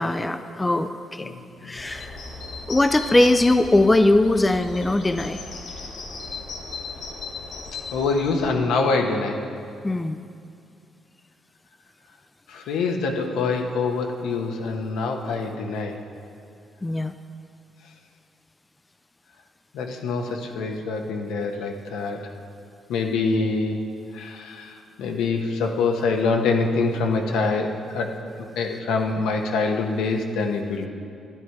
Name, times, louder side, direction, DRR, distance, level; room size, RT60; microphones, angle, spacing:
voice 1, 0.0-1.3 1.6-2.2 2.7-5.4 9.8-10.2 16.8-17.1, left 2 dB, 15° left, 9 dB, 0.5 m, -20 dB
voice 2, 1.2-1.8 7.9-9.4 12.5-16.0 19.7-22.2 22.9-23.9 24.1-28.1 28.6-30.9, left 4 dB, 90° left, 2 dB, 1.1 m, -25 dB
sound 1, 1.8-8.5, left 3 dB, 70° left, 2.2 m, -37 dB
12.5 x 10.0 x 4.7 m, 2.4 s
cardioid pair, 90°, 0 cm